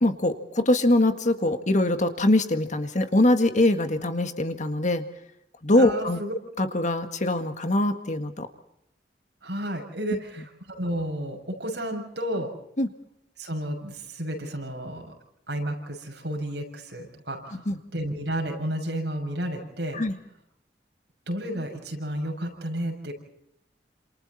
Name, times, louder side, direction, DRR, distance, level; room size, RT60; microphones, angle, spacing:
voice 1, 0.0-5.0 5.6-6.2 6.6-8.5 12.8-12.9 17.7-17.8 19.9-20.2, left 1 dB, 45° left, 8 dB, 1.8 m, -23 dB
voice 2, 5.8-6.3 9.4-12.5 13.4-15.1 15.5-20.0 21.3-23.1, right 1 dB, 70° right, 3 dB, 6.9 m, -32 dB
29.5 x 27.5 x 4.2 m, 0.79 s
head